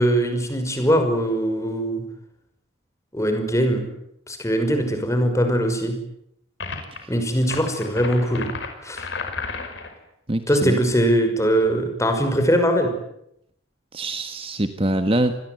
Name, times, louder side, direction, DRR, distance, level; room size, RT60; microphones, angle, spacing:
voice 1, 0.0-2.0 3.1-3.9 4.3-6.0 7.1-8.5 8.8-9.1 10.5-12.9, equal, 15° left, 5 dB, 5.7 m, -21 dB
sound 1, 6.6-7.0 7.4-9.9, left 4 dB, 60° left, 5.6 m, -32 dB
voice 2, 10.3-10.8 13.9-15.4, right 1 dB, 30° right, 8 dB, 1.5 m, -24 dB
29.0 x 21.0 x 9.5 m, 0.78 s
head